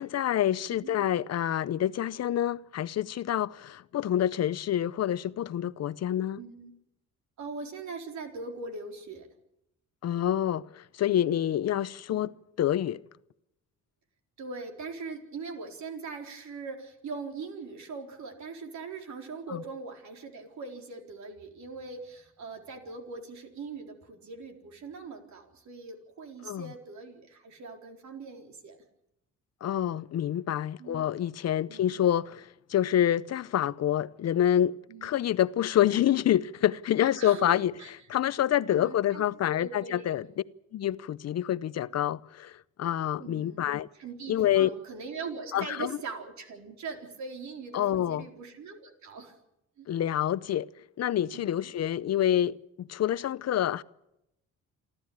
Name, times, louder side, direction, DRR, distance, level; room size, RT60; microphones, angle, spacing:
voice 1, 0.0-6.4 10.0-12.3 12.6-13.0 19.5-19.6 26.4-26.7 29.6-34.8 35.0-37.7 38.1-40.2 40.7-42.5 42.8-43.9 44.3-44.7 45.5-45.9 47.7-48.2 49.9-50.7 51.0-53.8, left 11 dB, 55° left, 0.7 m, -27 dB
voice 2, 6.4-6.7 7.4-9.3 12.1-12.3 14.4-28.8 30.8-31.1 31.7-32.1 34.9-35.3 37.1-37.9 38.7-40.2 43.2-49.3 49.8-49.9 51.3-51.7, right 4 dB, 70° right, 4.2 m, -41 dB
28.0 x 12.5 x 8.8 m
cardioid pair, 90°, 30 cm